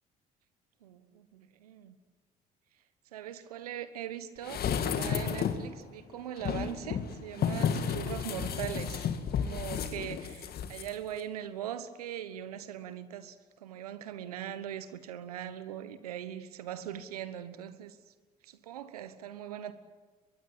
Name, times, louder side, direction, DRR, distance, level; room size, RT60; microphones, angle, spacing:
voice 1, 0.8-1.9 3.1-18.0 18.4-19.7, right 10 dB, 90° right, 1.2 m, -41 dB
sound 1, 4.4-5.7 6.4-10.9 11.2-11.3, left 7 dB, 55° left, 2.0 m, -32 dB
22.0 x 22.0 x 9.0 m
hypercardioid pair, 55°, 19 cm